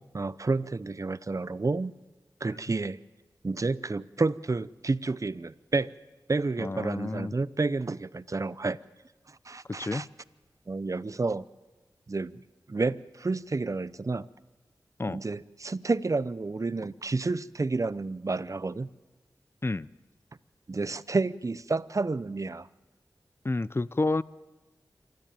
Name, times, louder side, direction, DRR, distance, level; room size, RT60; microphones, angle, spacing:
voice 1, 0.1-1.9 2.4-3.0 3.4-5.9 6.3-8.8 9.3-10.1 10.7-11.4 12.1-12.4 12.7-14.3 15.1-18.9 20.7-22.7, right 3 dB, 45° right, 18 dB, 0.7 m, -30 dB
voice 2, 6.6-7.3 9.7-10.1 15.0-15.2 19.6-19.9 23.4-24.2, left 2 dB, 30° left, 19 dB, 0.6 m, -29 dB
26.5 x 13.0 x 9.1 m, 1.2 s
cardioid pair, 45°, 8 cm